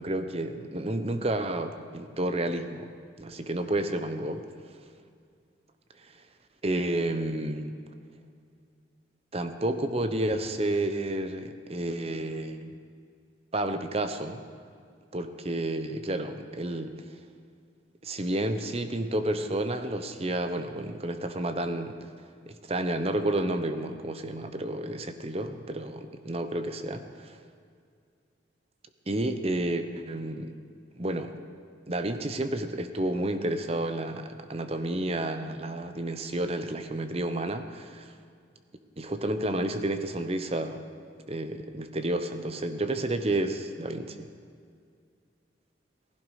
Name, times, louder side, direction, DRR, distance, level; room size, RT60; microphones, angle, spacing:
voice 1, 0.0-2.9 3.2-4.4 6.6-7.7 9.3-12.7 13.5-14.4 15.1-16.9 18.0-22.0 22.5-27.4 29.1-30.6 30.9-31.3 31.9-38.1 39.0-40.8 41.3-44.3, right 1 dB, 30° right, 8 dB, 0.8 m, -30 dB
16.5 x 15.5 x 5.0 m, 2.2 s
head